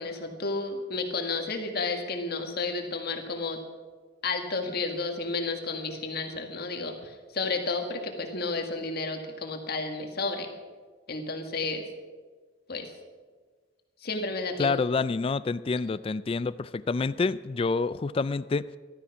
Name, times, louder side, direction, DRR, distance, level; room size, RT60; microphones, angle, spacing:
voice 1, 0.0-3.6 4.2-10.5 11.1-11.8 12.7-12.9 14.0-14.7, left 3 dB, 55° left, 4 dB, 1.8 m, -32 dB
voice 2, 14.6-18.7, left 4 dB, 30° left, 15 dB, 0.3 m, -28 dB
14.5 x 12.5 x 5.9 m, 1.4 s
head